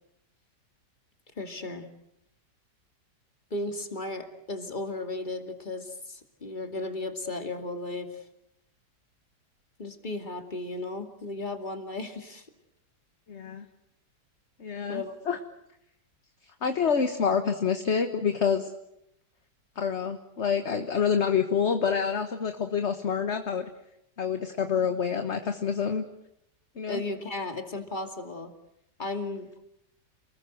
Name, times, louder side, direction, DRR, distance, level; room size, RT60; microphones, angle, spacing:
voice 1, 1.4-1.9 3.5-8.3 9.8-12.5 14.9-15.2 26.9-28.5 29.0-29.5, left 2 dB, 25° left, 5 dB, 2.6 m, -35 dB
voice 2, 13.3-13.6 14.6-15.4 16.6-18.7 19.8-23.7 24.2-26.1 26.8-27.0, left 6 dB, 45° left, 7 dB, 1.5 m, -27 dB
29.0 x 20.5 x 7.9 m, 0.81 s
omnidirectional pair, 1.8 m